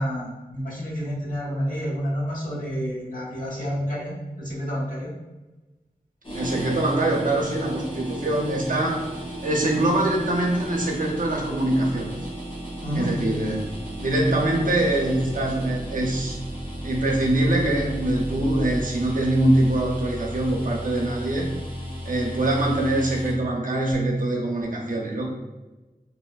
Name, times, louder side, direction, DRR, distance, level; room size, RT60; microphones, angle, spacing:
voice 1, 0.0-5.1 12.8-13.1, equal, 55° left, -7 dB, 1.0 m, -29 dB
sound 1, 6.2-23.3, right 1 dB, 35° left, 0.6 m, -34 dB
voice 2, 6.3-9.1 9.4-12.2 12.9-13.7 14.0-16.4 16.8-21.5 22.0-25.3, right 1 dB, 55° right, -1 dB, 0.5 m, -23 dB
2.7 x 2.1 x 2.2 m, 1.1 s
wide cardioid pair, 55°, 16 cm